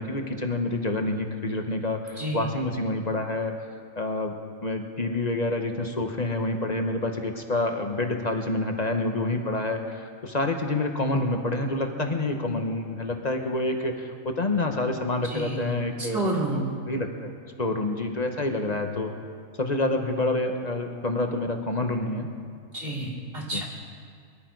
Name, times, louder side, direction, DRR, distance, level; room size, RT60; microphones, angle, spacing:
voice 1, 0.0-3.5 4.0-4.3 4.6-16.6 16.9-17.3 17.6-19.1 19.6-22.3 23.5-23.6, left 2 dB, 30° left, 4 dB, 1.0 m, -28 dB
voice 2, 2.2-2.5 15.2-15.7 16.1-16.7 22.7-23.6, right 1 dB, 40° right, -3 dB, 3.1 m, -29 dB
23.0 x 11.5 x 4.6 m, 2.2 s
omnidirectional pair, 1.5 m